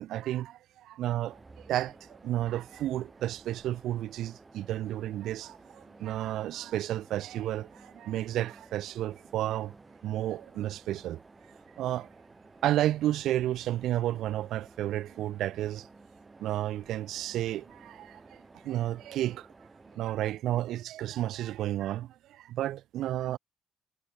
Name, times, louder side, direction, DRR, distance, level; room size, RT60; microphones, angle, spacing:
voice 1, 0.0-1.4 1.7-2.0 2.2-9.7 10.0-11.2 11.8-12.1 12.6-15.9 16.4-19.5 19.9-23.4, right 13 dB, 85° right, 1.3 m, -32 dB
sound 1, 1.3-20.0, right 3 dB, 25° right, 3.2 m, -54 dB
cardioid pair, 90°, 0 cm